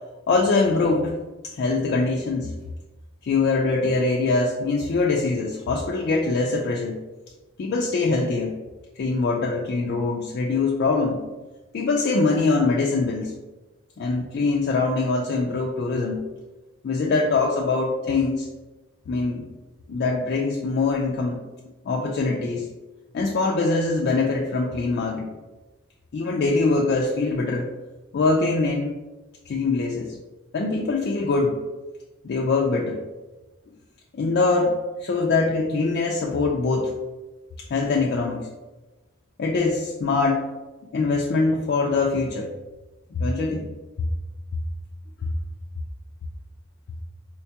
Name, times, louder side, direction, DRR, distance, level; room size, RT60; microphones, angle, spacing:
voice 1, 0.3-1.2 1.5-2.5 3.2-7.0 7.6-8.5 9.0-11.2 11.7-13.3 14.0-16.2 16.8-18.5 19.1-19.5 19.9-21.4 21.9-22.7 23.1-25.3 26.1-27.7 28.1-28.9 29.5-30.2 30.5-31.6 32.2-33.0 34.1-36.9 37.7-38.5 39.4-40.5 40.9-42.5 43.1-43.7, left 3 dB, 55° left, -1 dB, 0.3 m, -23 dB
4.4 x 2.2 x 2.7 m, 1.2 s
head